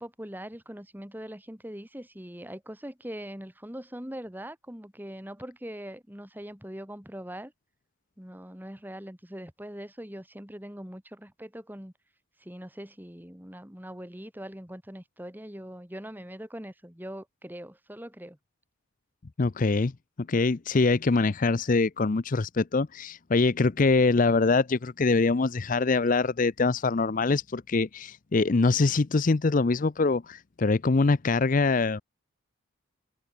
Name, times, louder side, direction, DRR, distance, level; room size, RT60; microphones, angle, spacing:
voice 1, 0.0-7.5 8.2-11.9 12.4-18.4, equal, 10° right, 2.2 m, -42 dB
voice 2, 19.4-19.9 20.3-32.0, left 3 dB, 40° left, 0.5 m, -24 dB
head